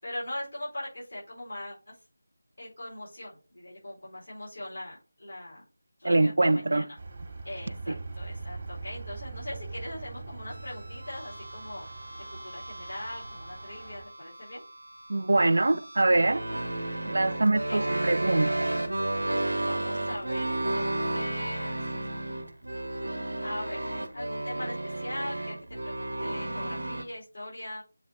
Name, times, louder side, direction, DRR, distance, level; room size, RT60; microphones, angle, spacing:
voice 1, 0.0-2.0 2.6-5.6 6.0-7.0 7.4-11.9 12.3-14.6 17.2-18.0 19.6-21.9 23.4-23.8 24.1-27.8, left 1 dB, 60° left, 4.7 m, -41 dB
voice 2, 6.0-6.9 7.9-8.0 15.1-16.5 17.1-18.7, right 2 dB, 55° right, 0.4 m, -24 dB
sound 1, 7.0-14.1, right 3 dB, 40° right, 2.5 m, -42 dB
sound 2, 10.5-27.0, right 1 dB, 75° right, 1.2 m, -33 dB
8.0 x 4.1 x 4.5 m
figure-of-eight pair, 165°, 0 cm